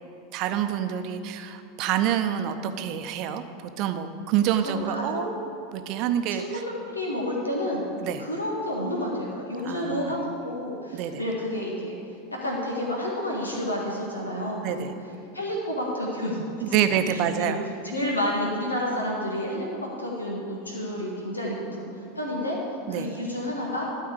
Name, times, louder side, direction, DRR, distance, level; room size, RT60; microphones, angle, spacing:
voice 1, 0.3-3.4 3.8-5.3 5.7-6.6 8.0-8.2 9.6-10.1 10.9-11.2 14.6-14.9 16.6-17.6 22.9-23.1, right 9 dB, 45° right, 8 dB, 0.8 m, -27 dB
voice 2, 4.6-5.3 6.3-7.9 8.2-12.0 12.4-14.9 15.3-17.6 17.8-19.7 20.0-21.9 22.2-22.6 22.9-23.9, left 1 dB, 85° left, -2 dB, 1.7 m, -30 dB
13.0 x 4.6 x 8.1 m, 2.6 s
figure-of-eight pair, 85°, 0 cm